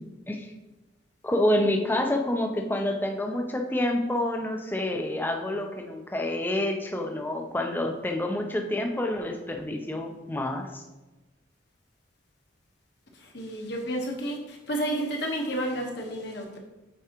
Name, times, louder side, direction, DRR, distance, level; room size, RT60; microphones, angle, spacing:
voice 1, 1.2-10.8, left 1 dB, 10° left, 3 dB, 0.5 m, -28 dB
voice 2, 13.2-16.6, right 1 dB, 60° left, 1 dB, 1.1 m, -31 dB
8.2 x 4.7 x 2.9 m, 1.1 s
head